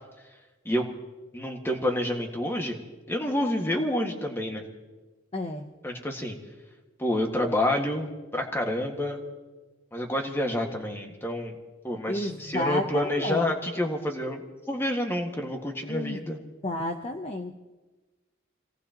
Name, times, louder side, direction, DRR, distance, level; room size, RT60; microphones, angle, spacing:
voice 1, 1.3-2.8 3.1-4.6 5.8-6.4 7.0-9.2 9.9-11.6 11.8-16.4, left 1 dB, 10° left, 2 dB, 1.8 m, -28 dB
voice 2, 5.3-5.7 12.1-13.5 15.9-16.2 16.6-17.6, left 1 dB, 30° left, 5 dB, 0.8 m, -31 dB
27.0 x 18.0 x 3.0 m, 1.2 s
head